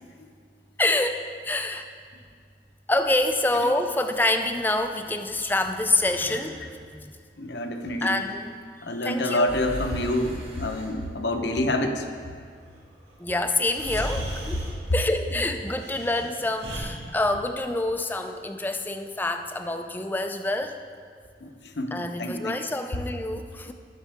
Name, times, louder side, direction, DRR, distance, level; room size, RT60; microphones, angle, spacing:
voice 1, 0.8-1.9 2.9-6.6 6.9-7.1 8.0-8.6 9.0-9.5 13.2-14.7 14.9-20.8 21.9-23.7, left 2 dB, 10° left, 6 dB, 0.4 m, -26 dB
Breathing, 5.8-6.7 9.4-10.9 13.1-13.2 13.7-14.8 15.7-16.8, equal, 70° right, 3.1 m, -37 dB
voice 2, 7.4-8.2 8.8-12.1 14.0-14.1 15.3-15.4 21.4-22.7 23.7-23.8, left 1 dB, 70° left, 4 dB, 0.9 m, -28 dB
19.5 x 6.6 x 3.5 m, 2.1 s
head